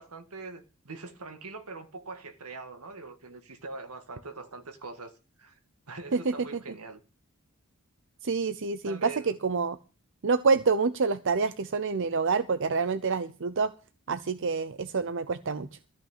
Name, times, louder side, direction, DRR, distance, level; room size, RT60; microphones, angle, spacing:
voice 1, 0.0-5.1 5.4-5.6 5.9-7.0 8.8-9.4, right 3 dB, 85° right, 1.9 m, -42 dB
voice 2, 8.2-9.1 9.4-9.8 10.2-13.7 14.1-15.7, right 4 dB, 60° right, 0.7 m, -27 dB
14.0 x 6.0 x 8.9 m
head